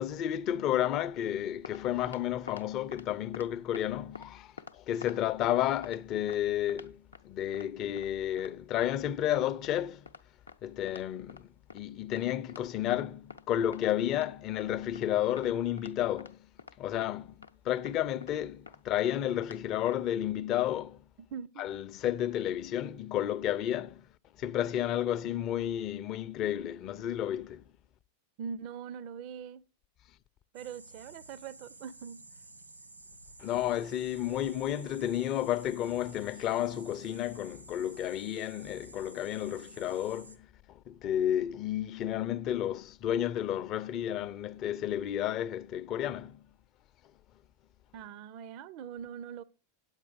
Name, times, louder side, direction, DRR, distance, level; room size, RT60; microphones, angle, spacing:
voice 1, 0.0-10.1 10.6-16.4 16.8-21.0 21.6-24.1 24.4-27.7 33.4-46.4, left 11 dB, 35° left, 0.5 m, -32 dB
sound 1, 1.4-1.8 2.1-2.7 2.9-3.1 3.3-3.9 4.1-4.3 4.6-5.6 5.8-6.0 6.3-6.4 6.7-7.2 7.5-7.7 8.0-8.1 8.4-8.5 8.8-8.9 9.2-9.4 9.6-9.8 10.1-10.2 10.5-10.6 10.9-11.4 11.7-11.8 12.1-12.2 12.5-12.6 12.9-13.4 13.7-14.7 15.0-15.1 15.4-15.5 15.8-15.9 16.2-16.3 16.6-16.8 17.0-17.1 17.4-17.5 17.8-17.9 18.2-18.3 18.7-18.8 19.1-19.2 19.4-19.6 19.9-20.0, left 4 dB, 75° left, 0.6 m, -47 dB
voice 2, 21.3-21.7 28.4-29.6 30.5-32.2 47.9-49.4, right 7 dB, 45° right, 0.4 m, -42 dB
sound 2, 30.5-40.4, right 2 dB, 85° right, 1.4 m, -52 dB
8.8 x 8.4 x 4.8 m
figure-of-eight pair, 90°, 0 cm